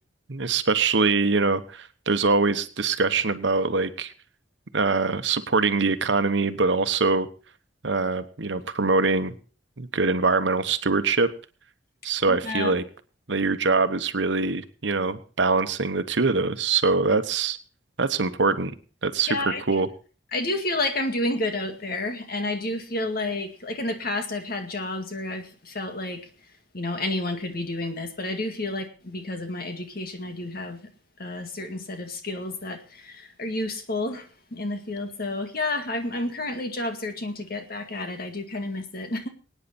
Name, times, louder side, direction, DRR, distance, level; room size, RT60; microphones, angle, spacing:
voice 1, 0.3-4.1 4.7-7.3 7.8-9.4 9.8-11.3 12.0-12.8 13.3-17.6 18.0-18.7 19.0-19.3 19.7-19.9, right 4 dB, 70° right, 10 dB, 1.1 m, -23 dB
voice 2, 12.3-12.8 19.3-19.8 20.3-26.2 26.7-30.9 31.2-39.3, left 2 dB, 55° left, 6 dB, 2.1 m, -30 dB
23.0 x 9.4 x 4.3 m, 0.38 s
head